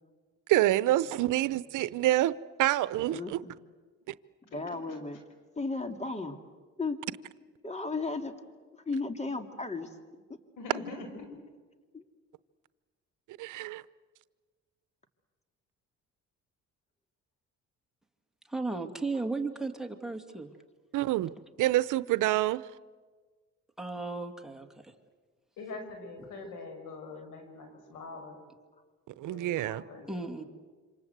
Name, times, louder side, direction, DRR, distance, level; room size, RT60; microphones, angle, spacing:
voice 1, 0.5-2.3 2.6-3.4 13.4-13.8 20.9-21.3 21.6-22.6 29.2-29.8, right 15 dB, 85° right, 0.8 m, -27 dB
voice 2, 3.1-3.6 4.4-5.2 5.6-6.4 6.8-7.0 7.6-8.3 8.9-10.0 11.0-11.1 11.9-12.0 18.7-18.8 19.1-19.2, left 3 dB, 20° left, 2.5 m, -35 dB
voice 3, 10.6-11.3 25.6-28.4 29.2-30.5, left 3 dB, 90° left, 5.8 m, -44 dB
voice 4, 18.5-20.5 23.8-24.9 30.1-30.4, right 3 dB, ahead, 2.4 m, -35 dB
27.5 x 26.0 x 8.1 m
cardioid pair, 90°, 30 cm